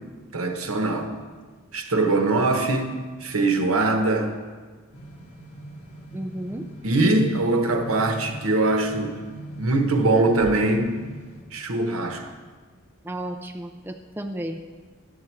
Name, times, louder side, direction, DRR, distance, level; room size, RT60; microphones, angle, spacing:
voice 1, 0.3-1.1 1.7-4.3 6.8-9.1 9.5-10.9 11.5-12.2, right 2 dB, 80° right, 5 dB, 1.0 m, -22 dB
sound 1, 4.9-11.4, right 1 dB, 80° left, 1.5 m, -41 dB
voice 2, 6.1-6.7 13.0-14.6, right 1 dB, 10° right, 4 dB, 0.4 m, -33 dB
10.5 x 7.7 x 4.5 m, 1.4 s
head